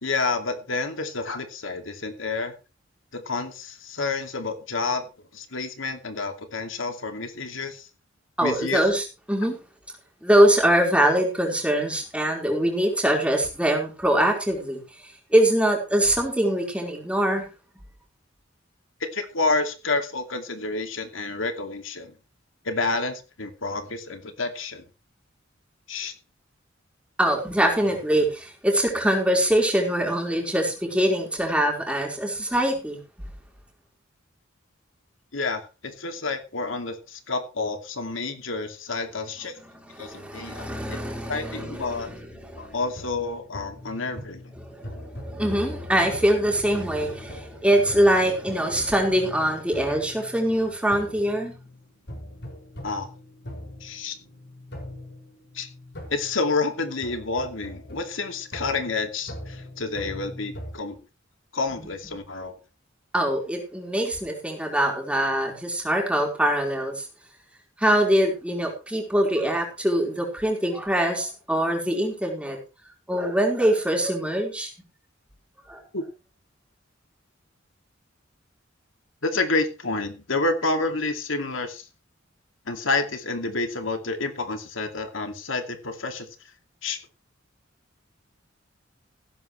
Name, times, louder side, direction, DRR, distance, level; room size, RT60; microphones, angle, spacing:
voice 1, 0.0-2.5 3.1-5.1 5.3-7.9 8.4-8.8 19.1-22.1 22.6-24.8 25.9-26.1 35.3-39.6 40.0-41.0 41.3-42.1 42.6-44.4 52.8-53.1 53.8-54.2 55.5-55.7 56.1-61.0 61.5-62.5 75.9-76.0 79.2-81.9 82.7-86.3 86.8-87.0, left 3 dB, 85° left, 6 dB, 2.4 m, -29 dB
voice 2, 8.4-9.6 10.2-14.8 15.3-17.5 27.2-33.0 39.9-42.7 44.6-51.5 63.1-67.1 67.8-72.6 73.1-74.7 75.7-75.8, right 1 dB, 5° right, 0 dB, 4.6 m, -23 dB
sound 1, 42.5-60.7, left 1 dB, 60° left, 5.9 m, -42 dB
16.0 x 12.5 x 3.3 m, 0.31 s
head